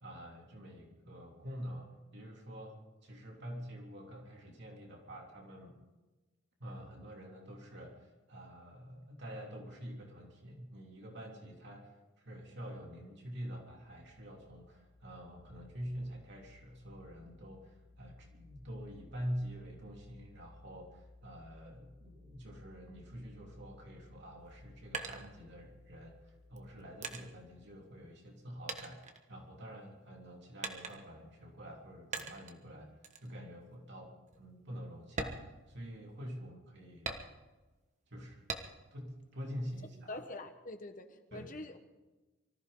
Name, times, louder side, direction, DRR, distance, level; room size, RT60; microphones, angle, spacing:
voice 1, 0.0-5.8 6.6-32.9 33.2-37.1 38.1-38.4 38.9-40.2 41.3-41.5, equal, 55° right, 0 dB, 3.0 m, -46 dB
sound 1, 13.8-27.8, left 2 dB, 70° left, 4.1 m, -60 dB
sound 2, 24.4-25.9 26.5-28.4 28.7-29.8 30.6-31.3 32.1-32.6 33.0-33.3 33.7-33.8 34.3-34.4 35.1-36.3 37.1-37.7 38.5-39.0 39.4-40.3, right 4 dB, 35° right, 1.4 m, -43 dB
voice 2, 40.1-41.8, left 2 dB, 40° left, 6 dB, 1.4 m, -45 dB
24.5 x 14.5 x 3.9 m, 1.2 s
head